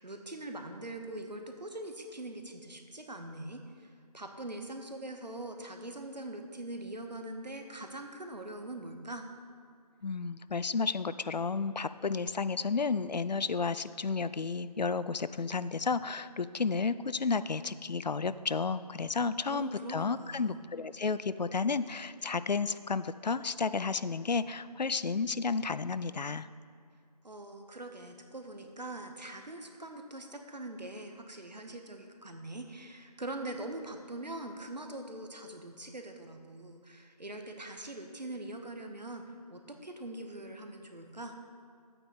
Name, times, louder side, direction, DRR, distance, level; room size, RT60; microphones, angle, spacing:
voice 1, 0.0-9.2 19.5-20.6 27.2-41.4, right 1 dB, 80° right, 5 dB, 1.2 m, -43 dB
voice 2, 10.0-26.5, left 4 dB, 85° left, 14 dB, 0.4 m, -32 dB
11.5 x 8.7 x 3.1 m, 2.3 s
figure-of-eight pair, 165°, 21 cm